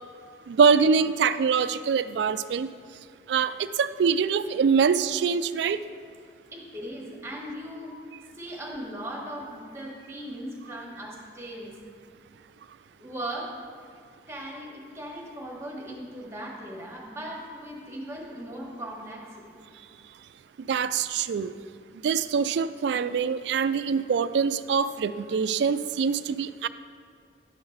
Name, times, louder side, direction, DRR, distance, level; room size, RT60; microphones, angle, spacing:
voice 1, 0.5-2.7 3.3-5.8 20.7-21.5 22.0-26.7, right 6 dB, 70° right, 14 dB, 0.3 m, -24 dB
voice 2, 6.5-7.9 8.3-11.8 13.0-13.5 14.3-19.6, right 1 dB, 15° right, -2 dB, 1.3 m, -38 dB
10.0 x 3.9 x 6.3 m, 2.2 s
head